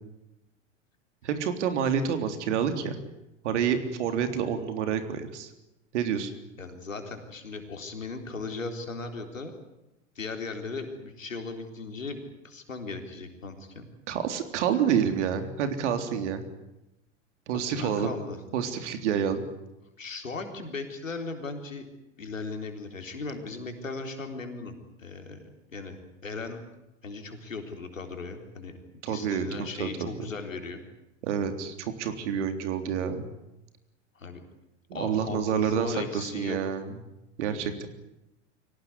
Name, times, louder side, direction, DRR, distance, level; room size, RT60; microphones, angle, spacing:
voice 1, 1.2-3.0 3.4-5.5 5.9-6.3 14.1-16.4 17.5-18.1 18.5-19.4 29.0-29.5 29.8-30.1 31.2-33.3 34.9-37.0 37.4-37.9, right 8 dB, 65° right, 8 dB, 3.6 m, -28 dB
voice 2, 6.6-9.5 10.2-13.9 17.5-18.4 20.0-21.9 22.2-25.4 25.7-26.0 26.2-26.6 27.0-28.8 29.1-30.8 34.2-34.4 34.9-36.6, left 3 dB, 90° left, 5 dB, 4.0 m, -37 dB
24.0 x 18.0 x 9.8 m, 0.93 s
hypercardioid pair, 95°, 38 cm